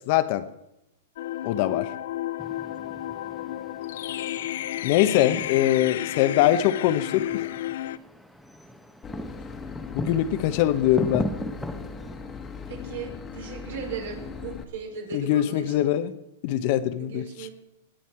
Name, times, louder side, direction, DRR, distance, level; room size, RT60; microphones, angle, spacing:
voice 1, 0.1-0.4 1.4-1.9 4.8-7.5 9.9-11.3 15.1-16.1 16.4-17.5, left 12 dB, 50° left, 11 dB, 1.0 m, -23 dB
sound 1, 1.2-8.0, left 13 dB, 70° left, 0.6 m, -32 dB
sound 2, 2.4-12.2, equal, ahead, 1.1 m, -38 dB
Boat Water vehicle / Engine, 9.0-14.6, left 5 dB, 20° left, 1.6 m, -39 dB
voice 2, 12.7-15.9 17.0-17.5, right 5 dB, 75° right, 1 dB, 4.9 m, -37 dB
20.5 x 9.3 x 4.6 m, 0.87 s
hypercardioid pair, 130°, 0 cm